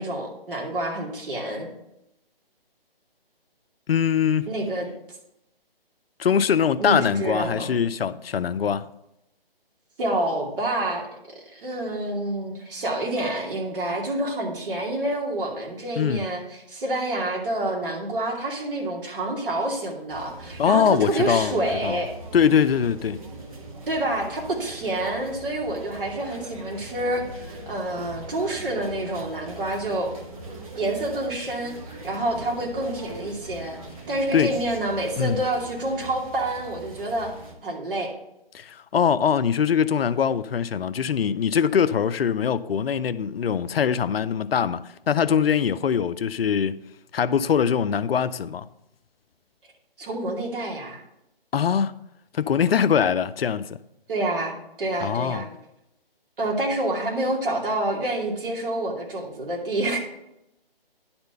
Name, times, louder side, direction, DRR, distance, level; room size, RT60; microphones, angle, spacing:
voice 1, 0.0-1.7 4.5-4.9 6.8-7.7 10.0-22.1 23.9-30.1 30.8-33.8 34.1-37.3 37.6-38.1 50.0-51.0 54.1-55.5 56.4-60.0, right 1 dB, 60° right, 2.6 m, -28 dB
voice 2, 3.9-4.5 6.2-8.9 16.0-16.2 20.6-22.0 22.3-23.2 34.3-34.5 35.2-35.4 38.5-46.8 47.1-48.7 51.5-51.9 52.3-53.8 55.0-55.4, left 7 dB, 70° left, 0.6 m, -22 dB
sound 1, 20.1-37.6, right 2 dB, 35° right, 1.5 m, -41 dB
10.5 x 4.4 x 6.6 m
hypercardioid pair, 160°, 30 cm